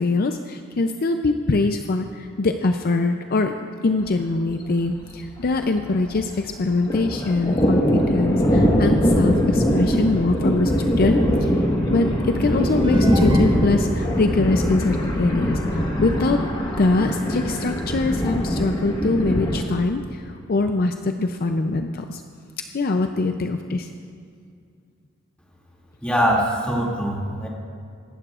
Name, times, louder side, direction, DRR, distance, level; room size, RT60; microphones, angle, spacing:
voice 1, 0.0-11.5 11.9-16.4 16.8-22.2 22.7-23.9, left 3 dB, 50° left, 6 dB, 0.5 m, -23 dB
Thunder, 4.0-4.2 4.5-4.6 4.9-6.4 6.7-19.6, equal, 25° left, 1.4 m, -21 dB
sound 1, 12.6-14.0, right 1 dB, 25° right, 0.7 m, -33 dB
voice 2, 26.0-27.5, equal, 5° left, -4 dB, 2.4 m, -22 dB
23.5 x 11.5 x 2.5 m, 2.3 s
head